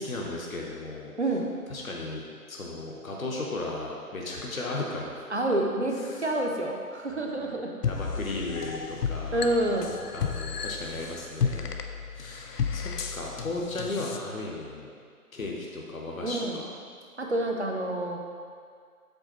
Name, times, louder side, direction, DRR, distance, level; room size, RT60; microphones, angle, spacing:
voice 1, 0.0-1.1 1.7-5.2 6.1-6.2 7.9-9.5 10.1-11.7 12.1-14.9 15.3-16.7, left 2 dB, 60° left, -2 dB, 1.0 m, -35 dB
voice 2, 5.3-7.7 9.3-9.9 16.2-16.6 17.2-18.2, right 1 dB, 45° right, 1 dB, 0.6 m, -28 dB
sound 1, 7.8-14.2, left 6 dB, 90° left, 0.6 m, -33 dB
7.8 x 4.1 x 3.0 m, 2.1 s
figure-of-eight pair, 175°, 47 cm